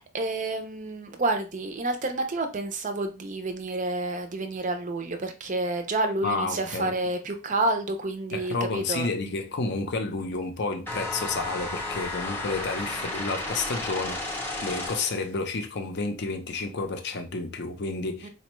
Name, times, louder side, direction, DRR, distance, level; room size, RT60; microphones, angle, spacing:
voice 1, 0.0-9.1 18.2-18.3, right 2 dB, 35° right, 0.5 m, -29 dB
voice 2, 6.2-6.9 8.3-18.3, left 3 dB, 50° left, 0.6 m, -30 dB
sound 1, 10.9-15.3, left 2 dB, 10° left, 0.7 m, -33 dB
4.3 x 2.2 x 3.0 m
head